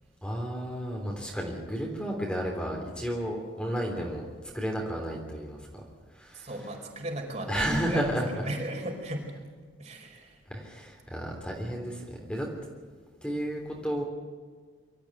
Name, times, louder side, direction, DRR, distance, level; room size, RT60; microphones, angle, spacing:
voice 1, 0.2-4.3 4.5-5.8 6.1-6.5 7.5-8.2 10.5-12.5 13.2-14.0, equal, 5° left, 0 dB, 3.4 m, -32 dB
voice 2, 6.3-9.3 9.8-10.4, right 1 dB, 40° right, 1 dB, 5.0 m, -36 dB
24.5 x 13.5 x 9.2 m, 1.5 s
head